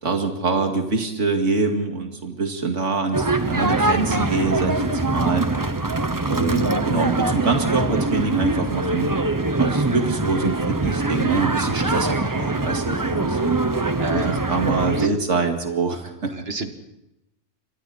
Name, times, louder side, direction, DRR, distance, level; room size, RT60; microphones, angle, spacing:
voice 1, 0.0-5.5 6.3-9.1 9.6-13.6 14.1-16.4, right 3 dB, 80° right, 3 dB, 2.4 m, -25 dB
sound 1, 3.1-15.1, right 2 dB, 20° right, 0.9 m, -23 dB
voice 2, 14.0-15.1 16.3-16.7, right 3 dB, 55° right, 7 dB, 1.9 m, -33 dB
29.0 x 24.0 x 4.1 m, 0.90 s
omnidirectional pair, 1.2 m